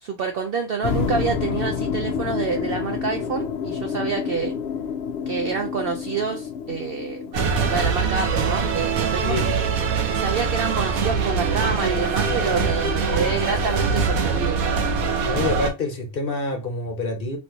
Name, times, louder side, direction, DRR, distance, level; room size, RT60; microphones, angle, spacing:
voice 1, 0.0-4.5 5.3-7.4 7.7-9.4 10.1-14.6, right 5 dB, 65° right, 0.6 m, -27 dB
sound 1, 0.8-7.8, left 7 dB, 65° left, 0.6 m, -28 dB
sound 2, 7.3-15.7, right 5 dB, 90° right, 1.2 m, -23 dB
voice 2, 15.2-17.4, left 3 dB, 45° left, 1.0 m, -27 dB
3.2 x 2.7 x 2.7 m
omnidirectional pair, 1.5 m